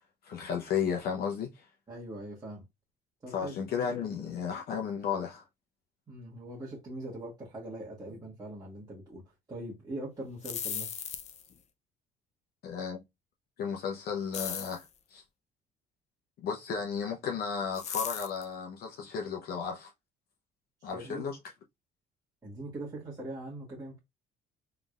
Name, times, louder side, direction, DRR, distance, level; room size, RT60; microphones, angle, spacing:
voice 1, 0.2-1.6 3.3-5.4 12.6-13.0 13.6-14.9 15.1-15.2 16.4-19.9 20.8-21.4, left 7 dB, 65° left, 0.8 m, -34 dB
voice 2, 1.9-2.6 3.2-3.5 3.9-4.3 6.1-9.2 9.5-10.9 20.8-21.3 22.4-24.0, right 1 dB, 25° right, 1.4 m, -42 dB
sound 1, 10.3-11.5 14.3-14.9 17.7-18.4, left 8 dB, 40° left, 0.5 m, -37 dB
3.8 x 3.3 x 2.4 m
cardioid pair, 110°, 17 cm